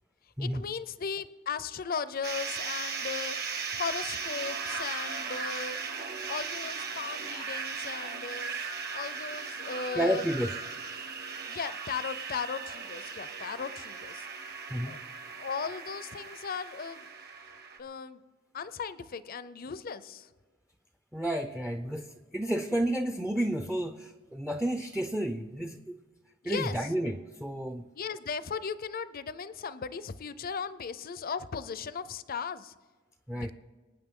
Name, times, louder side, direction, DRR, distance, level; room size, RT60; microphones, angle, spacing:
voice 1, 0.4-3.4 3.7-5.8 6.3-8.5 8.9-10.2 11.5-14.3 14.9-15.0 15.4-17.0 17.8-18.2 18.5-20.3 26.4-26.8 27.9-32.7 33.3-33.5, left 6 dB, 45° left, 15 dB, 0.5 m, -37 dB
sound 1, 2.2-17.8, right 5 dB, 55° right, 1.4 m, -37 dB
voice 2, 9.9-10.5 14.7-15.0 21.1-26.0 26.4-27.9 33.3-33.5, right 1 dB, 5° right, 8 dB, 0.5 m, -31 dB
26.0 x 9.3 x 3.7 m, 1.4 s
head